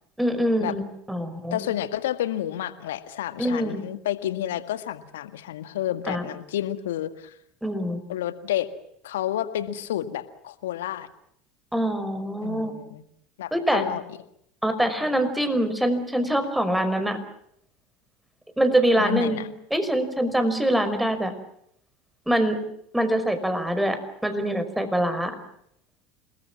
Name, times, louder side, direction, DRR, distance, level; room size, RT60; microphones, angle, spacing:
voice 1, 0.2-1.6 3.4-3.8 6.1-6.3 7.6-8.0 11.7-12.7 13.5-13.8 14.6-17.2 18.6-19.4 19.7-21.3 22.3-22.6 22.9-25.4, right 1 dB, 5° right, 9 dB, 5.5 m, -24 dB
voice 2, 1.5-7.3 8.1-8.7 9.0-11.1 12.4-13.0 13.4-14.0 19.0-19.5, left 12 dB, 75° left, 11 dB, 1.8 m, -30 dB
28.0 x 20.5 x 7.5 m, 0.71 s
hypercardioid pair, 80°, 0 cm